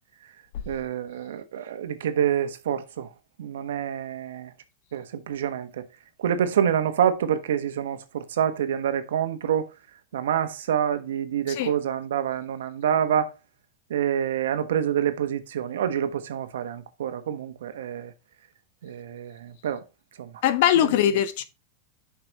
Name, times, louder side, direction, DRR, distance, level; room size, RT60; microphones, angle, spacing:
voice 1, 0.7-3.1 3.4-4.5 4.9-5.9 6.2-9.7 10.1-13.3 13.9-18.1 18.8-19.8 20.2-20.3 20.8-20.9, right 9 dB, 80° right, 1.1 m, -27 dB
voice 2, 20.4-21.4, left 11 dB, 65° left, 1.1 m, -21 dB
7.8 x 5.9 x 3.0 m
hypercardioid pair, 110°, 0 cm